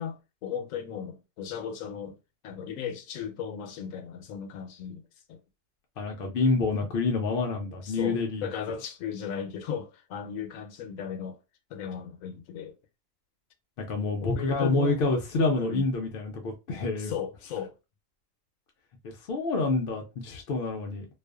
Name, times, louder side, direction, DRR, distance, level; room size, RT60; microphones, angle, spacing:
voice 1, 0.0-2.2 2.4-5.0 5.3-5.4 7.8-11.4 11.7-12.8 14.2-15.1 15.5-15.9 17.0-17.7, left 7 dB, 85° left, 1.0 m, -36 dB
voice 2, 6.0-8.5 13.8-17.1 19.0-21.1, left 3 dB, 60° left, 0.6 m, -27 dB
2.5 x 2.3 x 2.3 m
omnidirectional pair, 1.3 m